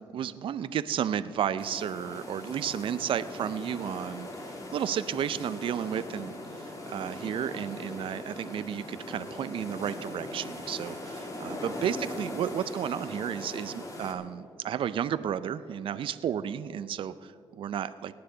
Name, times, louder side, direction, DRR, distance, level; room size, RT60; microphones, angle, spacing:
voice 1, 0.1-4.3 4.7-18.1, right 9 dB, 60° right, 14 dB, 0.4 m, -32 dB
sound 1, 1.6-14.1, left 1 dB, 35° left, 2.2 m, -40 dB
18.0 x 9.7 x 3.9 m, 2.5 s
cardioid pair, 85°, 10 cm